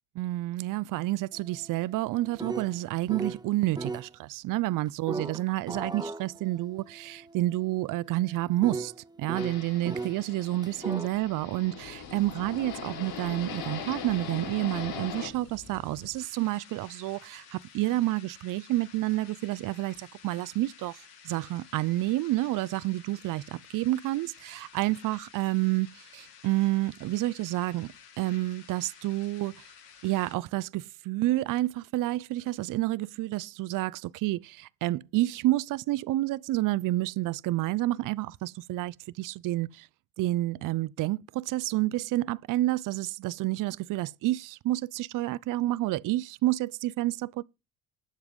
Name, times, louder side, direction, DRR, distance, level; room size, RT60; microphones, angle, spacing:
voice 1, 0.2-8.9 9.2-27.9 28.2-29.7 30.0-39.9 40.2-47.4, right 17 dB, 55° right, 0.6 m, -29 dB
sound 1, 1.3-3.5 3.8-4.1 5.1-10.2 10.6-11.1, right 3 dB, 10° right, 0.9 m, -38 dB
sound 2, 9.3-15.3, left 7 dB, 65° left, 7.1 m, -40 dB
sound 3, 10.7-30.3, left 6 dB, 85° left, 6.5 m, -52 dB
20.0 x 7.0 x 3.7 m
hypercardioid pair, 70°, 39 cm